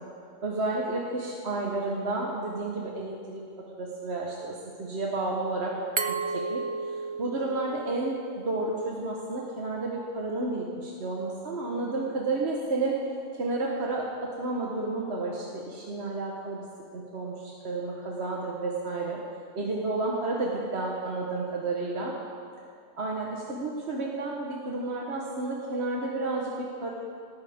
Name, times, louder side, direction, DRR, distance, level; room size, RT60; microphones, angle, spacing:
voice 1, 0.4-3.4 3.8-5.7 6.1-13.0 13.4-16.6 16.9-19.2 19.5-22.1 23.0-26.9, right 2 dB, 60° right, -2 dB, 1.6 m, -31 dB
Glass, 6.0-8.7, right 4 dB, 35° right, 0.5 m, -33 dB
18.0 x 14.0 x 3.7 m, 2.5 s
omnidirectional pair, 1.2 m